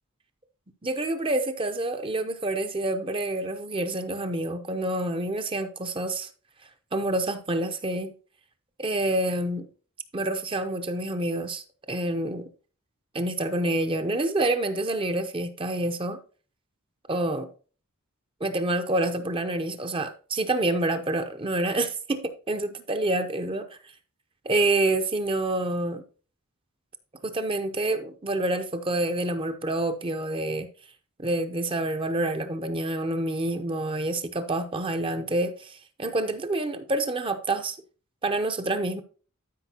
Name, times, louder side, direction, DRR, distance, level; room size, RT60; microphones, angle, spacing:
voice 1, 0.8-6.3 6.9-8.1 8.8-9.7 10.1-12.5 13.1-16.2 17.1-17.5 18.4-23.7 24.4-26.0 27.2-30.7 31.2-37.8 38.2-39.0, right 2 dB, 25° right, 0.7 m, -27 dB
12.5 x 5.2 x 2.9 m
head